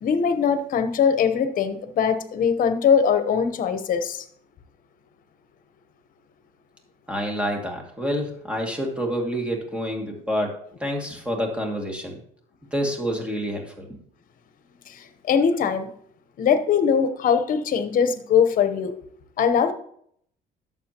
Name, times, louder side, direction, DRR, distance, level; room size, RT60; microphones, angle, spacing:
voice 1, 0.0-4.2 14.9-15.9 16.4-18.9 19.4-19.7, left 7 dB, 55° left, 10 dB, 1.0 m, -21 dB
voice 2, 7.1-10.5 10.8-12.2 12.7-14.0, equal, 5° right, 1 dB, 2.3 m, -28 dB
11.5 x 7.4 x 3.0 m, 0.65 s
cardioid pair, 110°, 17 cm